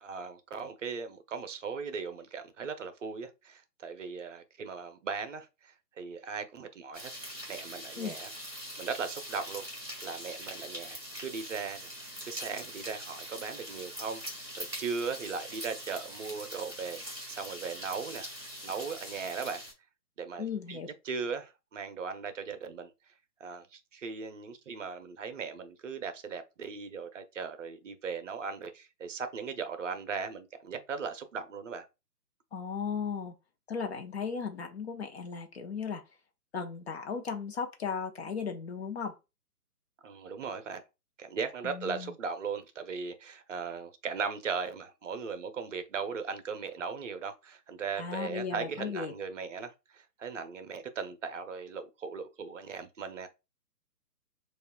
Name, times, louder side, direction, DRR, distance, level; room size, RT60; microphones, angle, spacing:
voice 1, 0.0-5.5 6.0-7.2 7.5-8.3 8.8-9.6 10.0-11.9 12.3-17.0 17.3-18.3 18.6-19.6 20.2-20.8 21.0-22.9 23.4-31.9 40.0-40.8 41.2-53.3, right 5 dB, 50° right, 0.7 m, -38 dB
sound 1, 6.9-19.7, equal, ahead, 0.5 m, -43 dB
voice 2, 20.4-20.9 32.5-33.3 33.7-36.0 36.5-39.2 41.6-42.1 48.0-49.1, left 6 dB, 40° left, 0.7 m, -36 dB
6.4 x 2.4 x 2.2 m
figure-of-eight pair, 140°, 48 cm